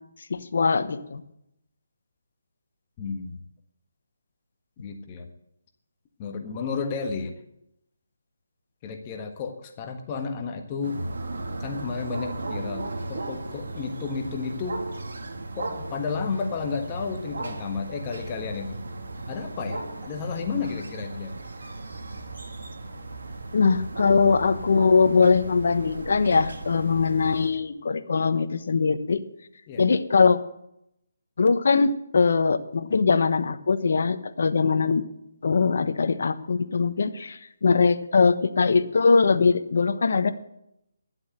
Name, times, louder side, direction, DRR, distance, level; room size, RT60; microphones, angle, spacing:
voice 1, 0.3-1.2 23.5-29.2 29.8-30.4 31.4-35.0 35.4-40.3, left 4 dB, 60° left, 9 dB, 1.1 m, -21 dB
voice 2, 3.0-3.4 4.8-5.3 6.2-7.4 8.8-11.0 11.6-14.9 15.6-18.8 19.3-21.3 29.7-29.8, left 5 dB, 25° left, 5 dB, 1.5 m, -32 dB
sound 1, 10.8-27.5, right 2 dB, 75° right, 2.3 m, -36 dB
12.0 x 8.0 x 8.0 m, 0.77 s
hypercardioid pair, 160°, 0 cm